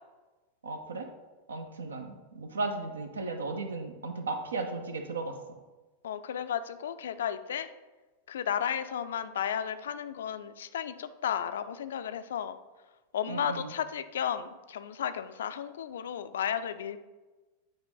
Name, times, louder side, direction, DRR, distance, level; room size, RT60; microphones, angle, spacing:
voice 1, 0.6-1.1 1.5-5.3 13.3-13.7, right 3 dB, 70° right, 6 dB, 0.7 m, -35 dB
voice 2, 6.0-7.7 8.3-12.6 13.1-17.0, left 9 dB, 60° left, 11 dB, 0.3 m, -33 dB
8.8 x 3.2 x 3.8 m, 1.2 s
figure-of-eight pair, 90°, 0 cm